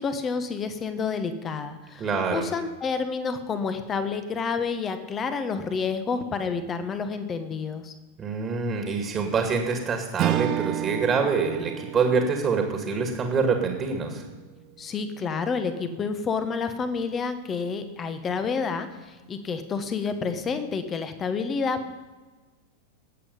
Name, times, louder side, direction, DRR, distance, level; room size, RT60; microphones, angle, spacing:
voice 1, 0.0-7.9 14.8-22.0, left 5 dB, 25° left, 9 dB, 1.4 m, -29 dB
voice 2, 2.0-2.4 8.2-14.2, right 5 dB, 20° right, 4 dB, 2.1 m, -25 dB
Strum, 10.2-14.8, right 13 dB, 35° right, 0.5 m, -32 dB
19.5 x 8.3 x 5.4 m, 1.3 s
figure-of-eight pair, 90°, 0 cm